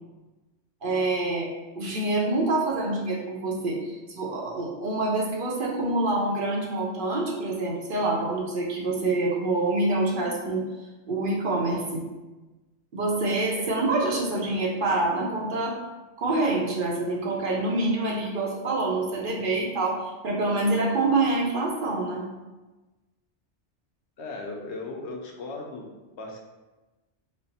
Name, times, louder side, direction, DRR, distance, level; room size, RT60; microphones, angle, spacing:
voice 1, 0.8-1.5 1.8-10.6 11.1-12.0 12.9-15.8 16.2-22.3, right 2 dB, 55° right, -3 dB, 0.8 m, -26 dB
voice 2, 24.2-25.9 26.2-26.4, left 2 dB, 75° left, 1 dB, 0.9 m, -36 dB
4.2 x 2.0 x 4.0 m, 1.2 s
omnidirectional pair, 1.2 m